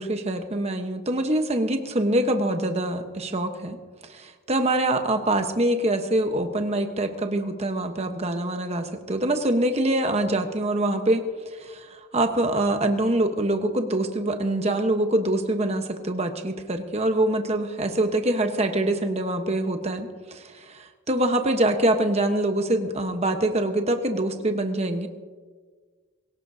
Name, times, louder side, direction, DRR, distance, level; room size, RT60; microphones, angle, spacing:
voice 1, 0.0-3.8 4.1-11.2 11.6-25.1, right 1 dB, 30° right, 6 dB, 1.1 m, -24 dB
22.5 x 17.5 x 2.8 m, 1.5 s
head